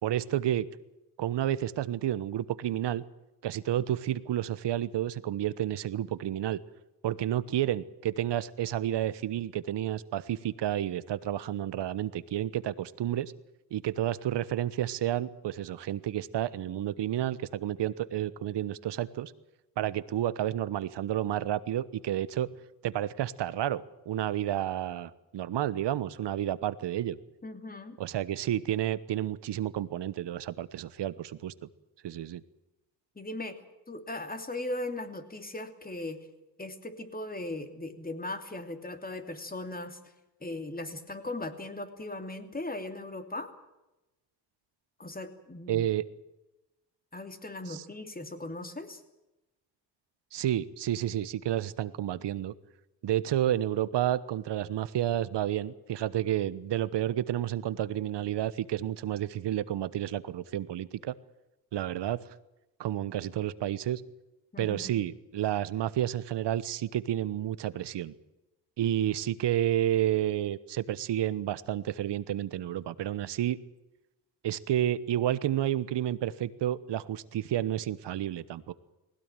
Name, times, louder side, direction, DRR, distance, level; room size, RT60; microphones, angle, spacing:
voice 1, 0.0-0.7 1.2-3.0 3.4-6.6 7.0-13.3 13.7-19.3 19.8-22.5 22.8-27.2 28.0-31.5 32.0-32.4 45.7-46.0 47.7-47.8 50.3-52.5 53.0-61.1 61.7-62.2 62.8-64.0 64.6-68.1 68.8-73.6 74.4-78.7, right 12 dB, 70° right, 16 dB, 1.2 m, -30 dB
voice 2, 27.4-28.0 33.1-33.6 33.9-36.3 36.6-40.0 40.4-43.5 45.0-45.9 47.1-49.0 64.5-64.9, left 2 dB, 20° left, 8 dB, 2.9 m, -38 dB
20.0 x 17.5 x 9.1 m, 0.98 s
cardioid pair, 75°, 43 cm